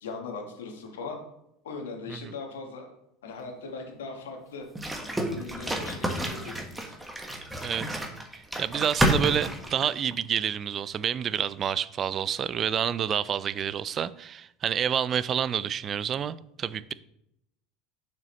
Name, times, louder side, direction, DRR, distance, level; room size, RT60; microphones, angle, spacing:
voice 1, 0.0-1.2 1.6-2.9 3.2-4.7 5.3-6.9, left 4 dB, 80° left, 3 dB, 1.5 m, -39 dB
sound 1, 4.7-10.2, right 1 dB, 10° right, 1.5 m, -30 dB
voice 2, 7.6-8.0 8.6-16.9, right 8 dB, 40° right, 18 dB, 0.4 m, -28 dB
6.8 x 6.3 x 3.2 m, 0.80 s
hypercardioid pair, 75°, 0 cm